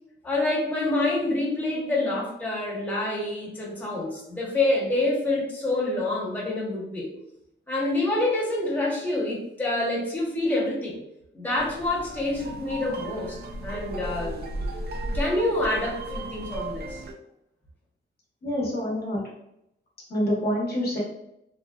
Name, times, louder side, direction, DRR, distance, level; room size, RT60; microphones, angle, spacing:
voice 1, 0.2-7.1 7.7-11.0 11.3-14.5 15.0-17.0, left 2 dB, 10° left, -6 dB, 0.8 m, -27 dB
sound 1, 11.6-17.1, right 1 dB, 50° right, 0.4 m, -34 dB
voice 2, 18.4-19.2 20.1-21.0, equal, 50° left, -4 dB, 0.8 m, -26 dB
2.5 x 2.1 x 2.3 m, 0.81 s
wide cardioid pair, 110°, 20 cm